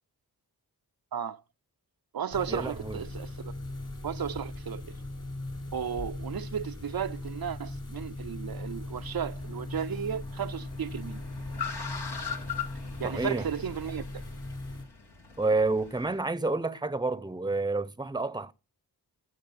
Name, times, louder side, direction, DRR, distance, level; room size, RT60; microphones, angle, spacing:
voice 1, 1.1-1.4 2.1-3.5 4.0-5.0 5.7-11.2 13.0-14.2, right 8 dB, 65° right, 0.6 m, -34 dB
sound 1, 2.3-14.8, left 2 dB, 50° left, 4.2 m, -39 dB
voice 2, 2.5-3.0 13.0-13.5 15.4-18.5, right 3 dB, 10° right, 0.8 m, -29 dB
Car, 8.8-16.2, left 7 dB, 80° left, 2.3 m, -41 dB
16.0 x 6.5 x 5.8 m
wide cardioid pair, 60°, 39 cm